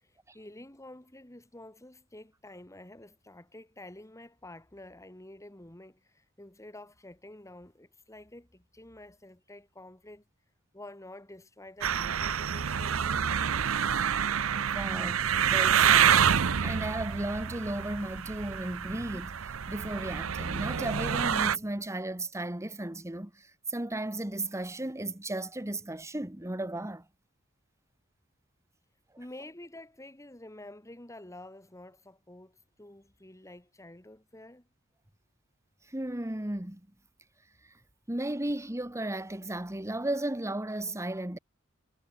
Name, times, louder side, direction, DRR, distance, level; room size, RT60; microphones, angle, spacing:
voice 1, 0.0-10.2 10.7-13.2 29.2-34.7, left 1 dB, 15° left, 2.3 m, -49 dB
sound 1, 11.8-21.6, right 8 dB, 90° right, 0.7 m, -27 dB
voice 2, 14.6-27.0 35.9-36.8 38.1-41.4, right 1 dB, 15° right, 1.3 m, -35 dB
head